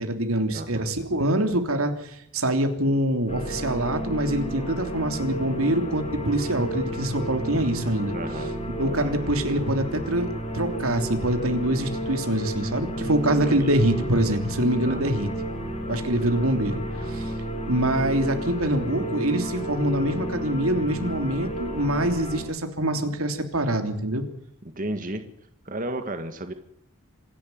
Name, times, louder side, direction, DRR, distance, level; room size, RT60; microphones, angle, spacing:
voice 1, 0.0-8.2 8.8-10.3 10.5-15.3 15.9-17.3 17.7-24.2, right 1 dB, 90° right, 7 dB, 3.2 m, -25 dB
voice 2, 0.5-0.9 8.1-8.5 8.9-9.3 13.4-13.8 14.8-15.2 24.6-25.2 25.6-26.5, right 1 dB, 40° right, 8 dB, 1.7 m, -33 dB
sound 1, 3.3-22.4, right 1 dB, 30° left, 7.3 m, -32 dB
26.5 x 11.5 x 9.4 m, 0.73 s
head